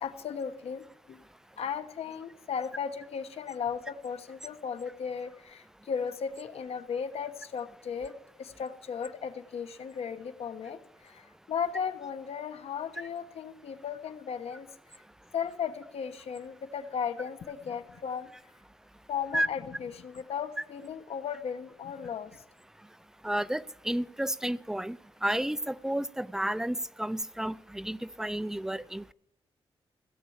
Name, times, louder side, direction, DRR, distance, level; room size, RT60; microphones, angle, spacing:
voice 1, 0.0-1.2 1.6-8.1 8.4-14.7 15.3-18.3 19.1-22.4, left 7 dB, 80° left, 10 dB, 1.1 m, -36 dB
voice 2, 23.2-25.0 25.2-29.1, right 1 dB, 5° right, 16 dB, 0.5 m, -31 dB
16.5 x 8.3 x 7.2 m, 0.78 s
wide cardioid pair, 115°, 10 cm